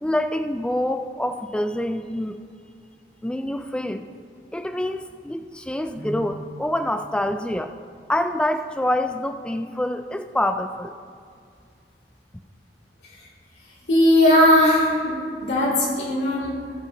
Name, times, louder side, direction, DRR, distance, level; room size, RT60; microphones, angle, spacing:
voice 1, 0.0-2.4 3.2-4.1 4.5-7.8 8.1-10.9, left 1 dB, 5° left, 7 dB, 0.3 m, -26 dB
voice 2, 13.9-15.1 15.4-16.6, left 1 dB, 75° left, -7 dB, 3.0 m, -18 dB
19.5 x 7.0 x 3.0 m, 2.3 s
head